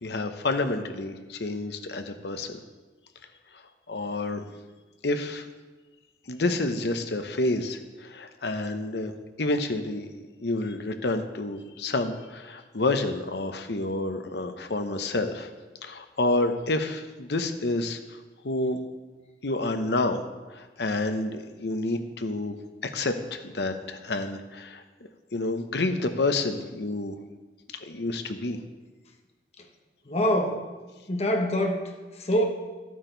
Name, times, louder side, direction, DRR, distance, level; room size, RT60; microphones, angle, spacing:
voice 1, 0.0-2.6 3.9-4.5 5.0-5.5 6.3-9.1 9.4-10.1 10.4-15.5 15.8-18.0 18.4-18.8 19.4-20.2 20.6-22.6 22.8-24.8 25.3-27.1 27.8-28.6, left 2 dB, 70° left, 8 dB, 0.9 m, -29 dB
voice 2, 30.1-30.6 31.1-31.9 32.2-32.4, equal, 35° left, 2 dB, 1.2 m, -24 dB
12.0 x 8.8 x 4.0 m, 1.3 s
head